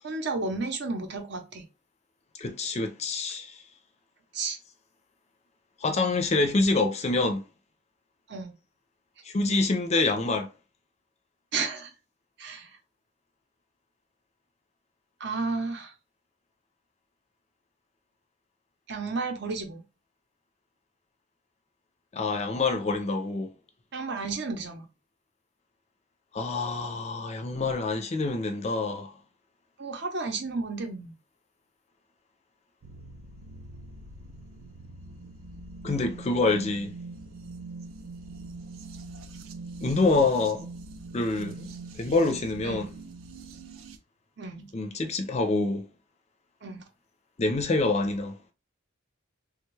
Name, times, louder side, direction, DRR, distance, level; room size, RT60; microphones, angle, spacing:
voice 1, 0.0-1.6 3.3-3.4 4.3-4.6 8.3-8.5 11.5-11.9 12.4-12.7 15.2-15.9 18.9-19.8 23.9-24.9 29.8-31.1 40.1-40.2 42.6-42.9 44.4-44.7 46.6-46.8, right 3 dB, 55° right, 0.8 m, -32 dB
voice 2, 2.4-3.6 5.8-7.4 9.2-10.5 22.1-23.5 26.3-29.1 35.8-36.9 39.8-40.7 41.1-41.7 42.0-42.9 44.7-45.9 47.4-48.4, left 3 dB, 30° left, 0.4 m, -26 dB
sound 1, 32.8-44.0, right 3 dB, 90° right, 0.5 m, -43 dB
3.4 x 2.3 x 3.2 m
head